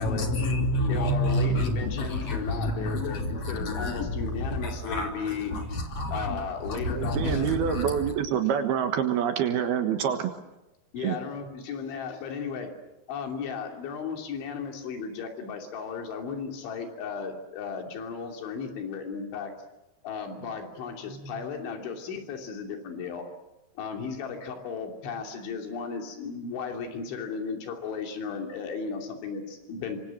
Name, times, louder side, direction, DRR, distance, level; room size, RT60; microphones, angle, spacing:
voice 1, 0.0-8.1, left 1 dB, 40° left, 3 dB, 3.7 m, -29 dB
voice 2, 0.9-5.5 6.1-7.5 10.9-12.7 13.1-19.5 20.0-23.3 23.8-30.0, left 6 dB, 80° left, 3 dB, 5.3 m, -35 dB
voice 3, 6.9-10.3 11.0-11.2, right 8 dB, 65° right, 7 dB, 3.0 m, -26 dB
25.5 x 25.0 x 7.7 m, 0.96 s
omnidirectional pair, 5.3 m